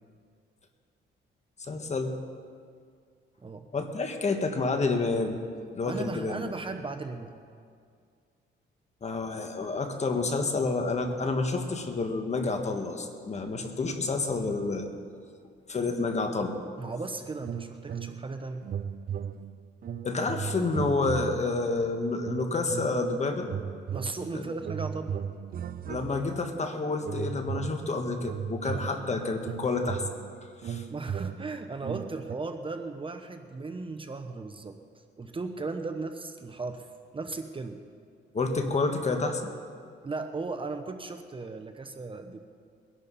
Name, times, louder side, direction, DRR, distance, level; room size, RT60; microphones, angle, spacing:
voice 1, 1.7-2.2 3.7-5.4 5.7-6.4 9.0-14.9 15.7-16.6 20.0-23.5 24.3-24.6 25.9-30.1 30.6-30.8 38.3-39.5, left 3 dB, 35° left, 5 dB, 1.7 m, -29 dB
voice 2, 5.8-7.4 16.8-18.6 23.9-25.2 30.6-34.8 35.2-36.9 37.1-37.8 40.0-42.4, right 3 dB, 25° right, 6 dB, 1.0 m, -36 dB
sound 1, 17.4-18.4 18.6-21.7 22.2-23.1 23.4-26.5 27.0-32.4, right 8 dB, 45° right, 0.6 m, -37 dB
22.0 x 11.0 x 4.2 m, 2.2 s
cardioid pair, 90°, 20 cm